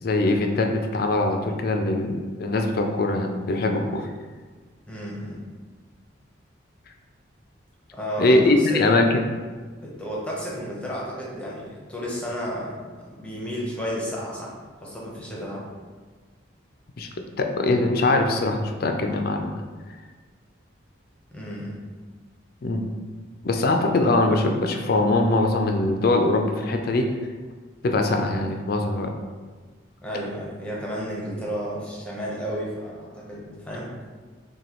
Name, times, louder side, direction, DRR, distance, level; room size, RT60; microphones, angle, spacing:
voice 1, 0.0-4.1 8.2-9.3 17.0-19.6 22.6-22.9 23.4-27.1 27.8-29.1, left 2 dB, 50° left, 4 dB, 0.4 m, -22 dB
voice 2, 4.9-5.4 7.9-8.9 9.8-14.5 14.8-15.6 21.3-21.8 30.0-33.9, equal, 5° left, -5 dB, 0.7 m, -32 dB
6.1 x 2.3 x 2.9 m, 1.4 s
head